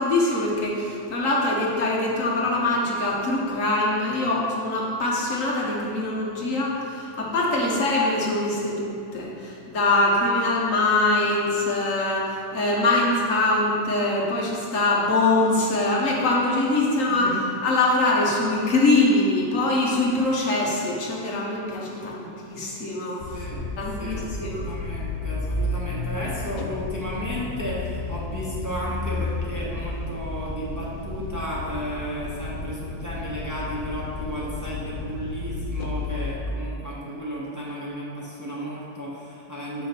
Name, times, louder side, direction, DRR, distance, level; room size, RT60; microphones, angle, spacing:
voice 1, 0.0-23.4 23.8-24.6, left 2 dB, 80° left, -3 dB, 1.5 m, -23 dB
sound 1, 23.2-36.4, left 3 dB, 55° left, 0.6 m, -32 dB
voice 2, 23.3-23.6 24.0-39.9, equal, 15° right, -6 dB, 1.0 m, -33 dB
6.7 x 5.7 x 4.3 m, 2.5 s
omnidirectional pair, 1.4 m